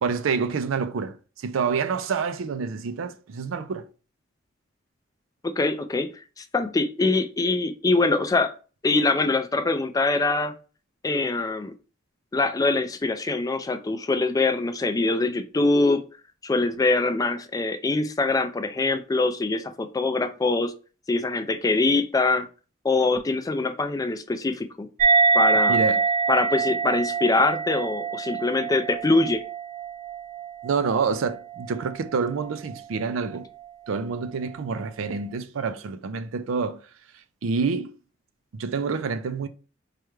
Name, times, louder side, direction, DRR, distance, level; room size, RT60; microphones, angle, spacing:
voice 1, 0.0-3.9 25.7-26.0 30.6-33.5 33.9-36.8 37.4-38.0 38.5-39.5, right 5 dB, 90° right, 0.4 m, -27 dB
voice 2, 5.4-6.1 6.4-8.5 8.8-10.5 11.0-11.7 12.3-16.0 16.4-20.7 21.1-22.5 22.8-24.9 25.3-25.8 26.3-29.4, left 3 dB, 20° left, 0.3 m, -23 dB
sound 1, 25.0-31.9, right 4 dB, 40° right, 0.5 m, -24 dB
4.8 x 2.2 x 3.1 m
head